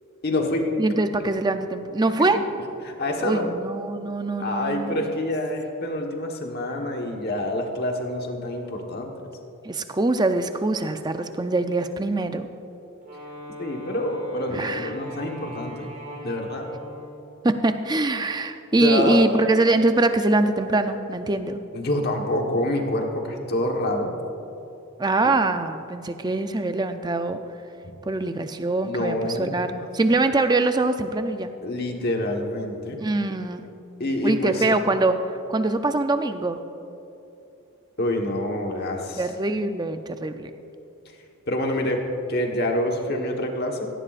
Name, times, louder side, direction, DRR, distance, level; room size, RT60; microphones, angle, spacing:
voice 1, 0.2-0.7 2.3-2.4 2.8-3.5 4.4-9.3 13.6-15.9 16.2-16.7 18.7-19.2 21.7-24.1 27.8-27.9 28.8-29.6 31.6-33.0 34.0-34.6 38.0-39.2 41.5-42.0 42.3-43.9, left 1 dB, 45° left, 2 dB, 1.3 m, -27 dB
voice 2, 0.8-2.4 3.2-5.0 9.6-12.5 14.5-14.9 17.4-21.6 25.0-27.4 28.0-31.5 33.0-33.7 34.2-36.6 39.2-40.5, right 2 dB, 20° right, 8 dB, 0.5 m, -23 dB
Wind instrument woodwind instrument, 13.0-17.4, equal, 35° right, 2.2 m, -39 dB
17.0 x 15.5 x 2.5 m, 2.8 s
head